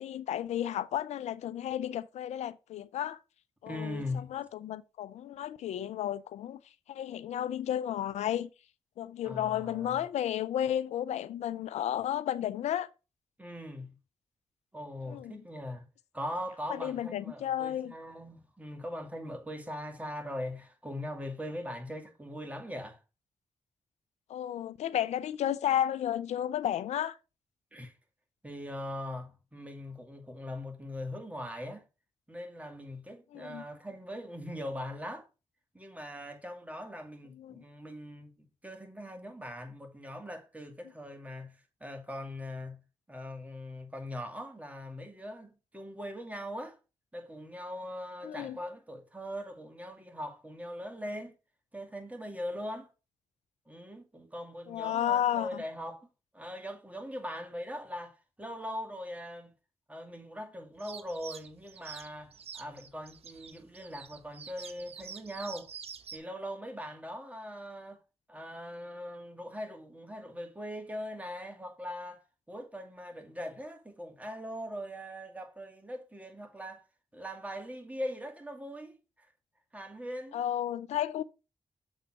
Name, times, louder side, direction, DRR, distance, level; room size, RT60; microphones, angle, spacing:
voice 1, 0.0-3.2 3.6-4.0 4.3-6.6 6.9-8.5 9.0-12.9 15.0-15.3 16.7-17.9 24.3-27.2 33.3-33.6 37.4-37.6 48.2-48.6 54.7-55.6 80.3-81.2, left 11 dB, 80° left, 0.4 m, -32 dB
voice 2, 3.7-4.3 9.2-10.1 13.4-14.0 14.7-15.8 16.1-23.0 27.7-27.9 28.4-31.8 32.3-35.3 35.7-42.8 43.1-46.8 47.1-51.3 51.7-52.9 53.7-56.1 56.3-59.5 59.9-65.7 66.1-68.0 68.3-76.8 77.1-79.3 79.7-80.4, equal, 10° right, 2.3 m, -41 dB
sound 1, 60.8-66.2, right 6 dB, 65° right, 0.9 m, -47 dB
7.1 x 4.0 x 5.8 m
supercardioid pair, 45°, 11 cm